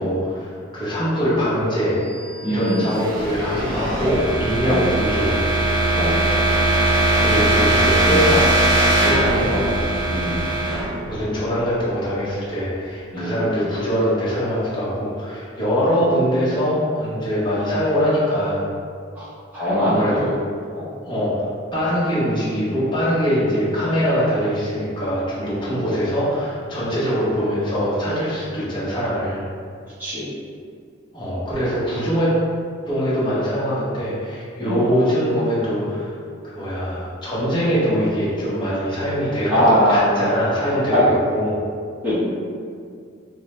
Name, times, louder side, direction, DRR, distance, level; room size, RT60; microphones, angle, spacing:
voice 1, 0.0-2.0 2.4-5.3 7.2-8.5 9.0-9.7 11.1-18.6 19.8-20.3 21.0-21.5 21.7-29.4 31.1-32.3 32.9-36.1 36.4-41.6, equal, 25° left, -10 dB, 1.1 m, -22 dB
sound 1, 2.2-12.0, right 1 dB, 75° right, 0.7 m, -20 dB
voice 2, 2.4-2.8 4.6-5.2 6.0-6.2 8.1-8.3 10.1-10.5 13.1-13.4 16.0-16.3 19.2-19.3 19.5-20.2 20.7-20.9 25.7-25.8 30.0-30.3 34.6-34.8 39.5-40.3 40.9-41.0 42.0-42.3, equal, 10° right, -14 dB, 0.9 m, -21 dB
4.4 x 2.2 x 3.1 m, 2.2 s
head